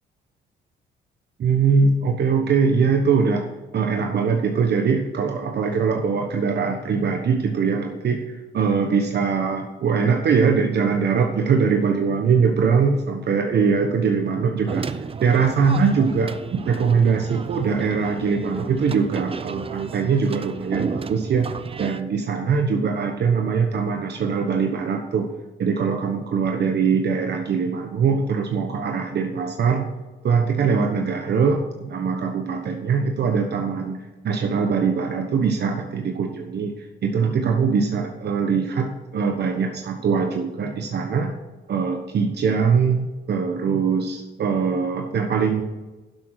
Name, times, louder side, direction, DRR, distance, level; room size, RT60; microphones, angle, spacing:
voice 1, 1.4-3.5 3.7-14.9 15.2-21.5 21.8-25.3 25.6-29.9 30.2-41.3 41.7-45.6, right 5 dB, 55° right, 3 dB, 1.2 m, -22 dB
sound 1, 14.7-22.0, right 5 dB, 30° right, 0.6 m, -33 dB
11.0 x 7.4 x 4.9 m, 1.2 s
cardioid pair, 90°, 20 cm